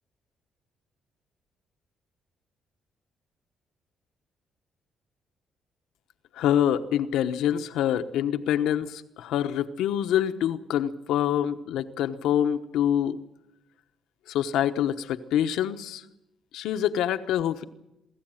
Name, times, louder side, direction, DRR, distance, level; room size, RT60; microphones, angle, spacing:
voice 1, 6.3-13.2 14.3-16.0 16.5-17.6, left 10 dB, 85° left, 8 dB, 1.1 m, -26 dB
24.0 x 14.0 x 9.1 m, 0.90 s
cardioid pair, 90°, 0 cm